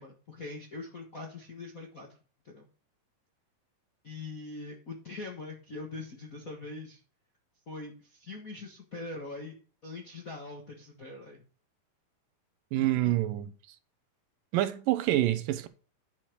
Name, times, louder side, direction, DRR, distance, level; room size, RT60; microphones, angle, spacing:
voice 1, 0.0-2.1 2.4-2.7 4.0-7.0 7.7-9.5 9.8-11.4 12.8-13.1, left 3 dB, 50° left, 1.0 m, -42 dB
voice 2, 12.7-13.5 14.5-15.7, right 14 dB, 80° right, 2.4 m, -27 dB
10.0 x 5.7 x 6.1 m
omnidirectional pair, 3.9 m